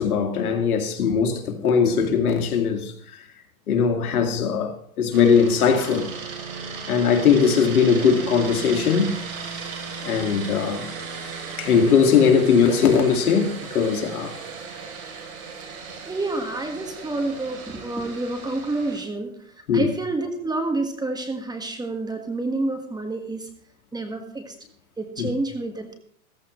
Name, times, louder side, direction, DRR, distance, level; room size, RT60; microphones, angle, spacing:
voice 1, 0.0-2.9 3.7-6.1 6.9-9.2 10.0-10.9 11.6-14.3 19.7-19.9 25.2-25.3, left 6 dB, 85° left, 2.3 m, -20 dB
sound 1, 5.1-19.0, right 5 dB, 70° right, 3.8 m, -36 dB
voice 2, 16.0-23.5 23.9-24.5 25.0-25.9, right 2 dB, 10° right, 1.6 m, -28 dB
14.5 x 14.5 x 3.2 m
hypercardioid pair, 125°, 43 cm